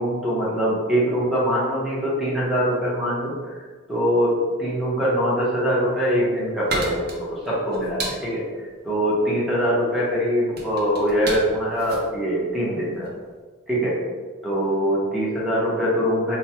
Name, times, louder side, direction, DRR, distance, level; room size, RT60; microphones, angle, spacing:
voice 1, 0.0-3.6 3.9-4.3 4.6-8.4 8.8-13.1 13.7-14.0 14.4-16.4, equal, ahead, -8 dB, 0.9 m, -23 dB
sound 1, 5.8-13.2, right 2 dB, 50° right, 0.7 m, -34 dB
3.1 x 2.3 x 4.3 m, 1.4 s
head